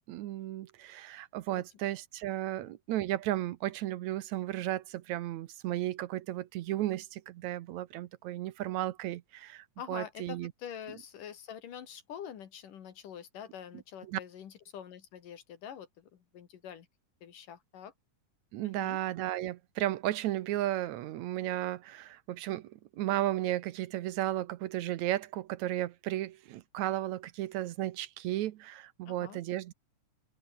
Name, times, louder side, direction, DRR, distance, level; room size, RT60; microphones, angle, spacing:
voice 1, 0.1-10.5 14.1-14.2 18.5-29.7, right 14 dB, 70° right, 2.0 m, -34 dB
voice 2, 9.8-16.9 17.2-17.9 18.6-19.0 29.1-29.4, left 9 dB, 80° left, 3.7 m, -46 dB
open air
omnidirectional pair, 3.7 m